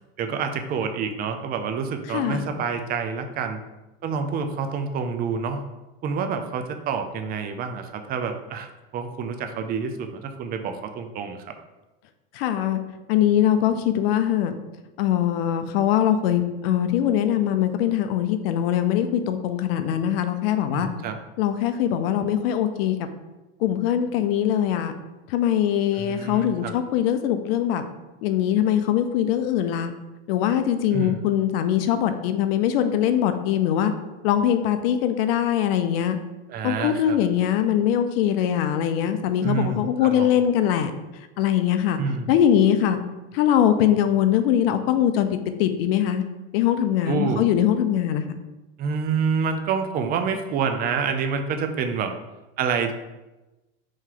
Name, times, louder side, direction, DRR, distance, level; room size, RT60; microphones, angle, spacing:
voice 1, 0.2-3.6 4.0-5.6 6.0-11.5 20.7-21.2 26.0-26.7 30.9-31.2 36.5-37.2 39.4-40.3 42.0-42.3 47.1-47.4 48.8-52.2 52.6-52.9, right 5 dB, 30° right, 6 dB, 0.4 m, -28 dB
voice 2, 2.1-2.5 12.3-12.8 13.1-14.5 15.0-20.9 21.4-23.0 23.6-24.9 25.3-27.8 28.2-29.9 30.3-33.9 34.2-36.2 36.6-40.9 41.4-42.0 42.3-43.0 43.3-45.3 45.6-46.2 46.5-48.2, left 10 dB, 75° left, 9 dB, 0.5 m, -22 dB
3.1 x 2.7 x 3.8 m, 1.1 s
supercardioid pair, 105°, 30 cm